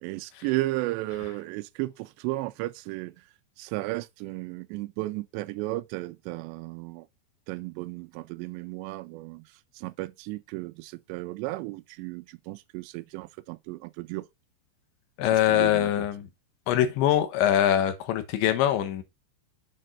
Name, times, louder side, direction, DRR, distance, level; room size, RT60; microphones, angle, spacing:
voice 1, 0.0-3.1 3.6-7.1 7.5-9.4 9.8-14.3 15.5-15.9, right 19 dB, 80° right, 2.7 m, -34 dB
voice 2, 15.2-16.3 16.7-19.0, left 11 dB, 85° left, 3.5 m, -23 dB
7.7 x 4.4 x 5.5 m
omnidirectional pair, 5.3 m